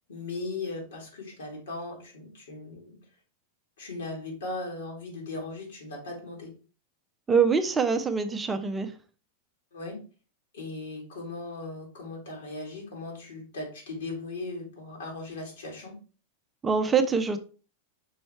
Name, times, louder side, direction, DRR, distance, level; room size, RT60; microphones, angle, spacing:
voice 1, 0.1-3.0 3.8-6.5 9.7-10.0 10.5-15.9, left 2 dB, 60° left, 0 dB, 2.4 m, -38 dB
voice 2, 7.3-8.9 16.6-17.4, right 5 dB, 15° right, 8 dB, 0.6 m, -24 dB
5.5 x 4.2 x 4.2 m, 0.36 s
figure-of-eight pair, 90°, 0 cm